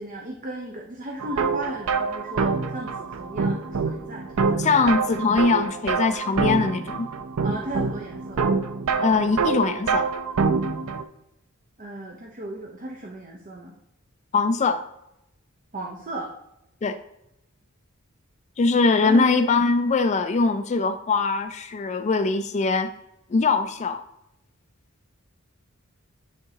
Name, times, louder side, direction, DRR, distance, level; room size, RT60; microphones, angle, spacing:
voice 1, 0.0-5.0 7.4-8.4 11.8-13.8 15.7-16.3 19.0-19.3, right 1 dB, 40° right, 0 dB, 0.7 m, -35 dB
sound 1, 1.2-11.0, right 4 dB, 75° right, 0.5 m, -26 dB
voice 2, 4.6-7.1 9.0-10.1 14.3-14.8 16.8-17.0 18.6-22.9 23.3-24.0, left 4 dB, 35° left, 10 dB, 0.3 m, -22 dB
9.8 x 3.7 x 2.8 m, 0.85 s
head